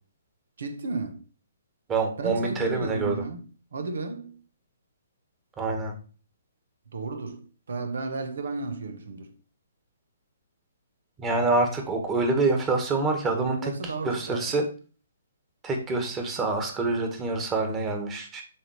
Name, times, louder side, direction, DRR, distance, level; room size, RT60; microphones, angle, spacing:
voice 1, 0.6-1.2 2.2-4.4 6.9-9.3 13.3-14.5, right 3 dB, 70° right, 1.3 m, -33 dB
voice 2, 1.9-3.2 5.6-5.9 11.2-13.7 14.0-14.6 15.6-18.4, right 3 dB, 20° right, 1.7 m, -26 dB
7.2 x 3.8 x 4.9 m
hypercardioid pair, 135°, 0 cm